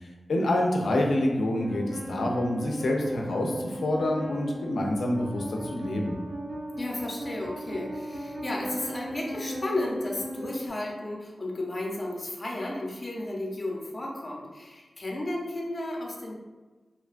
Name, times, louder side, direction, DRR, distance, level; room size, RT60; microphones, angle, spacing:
voice 1, 0.3-6.2, left 1 dB, 90° left, 0 dB, 0.4 m, -27 dB
sound 1, 1.6-10.7, right 1 dB, 50° right, 0.6 m, -37 dB
voice 2, 6.8-16.3, left 1 dB, 40° left, -1 dB, 0.6 m, -33 dB
2.8 x 2.2 x 2.4 m, 1.3 s
wide cardioid pair, 75°, 0 cm